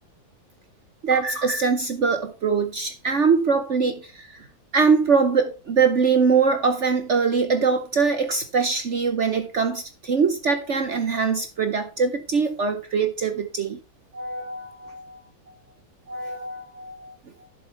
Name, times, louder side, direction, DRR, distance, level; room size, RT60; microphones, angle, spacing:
voice 1, 1.0-4.4 4.7-13.8 14.1-15.2 16.1-17.1, right 5 dB, 60° right, 0.7 m, -23 dB
11.0 x 7.0 x 3.3 m
omnidirectional pair, 2.1 m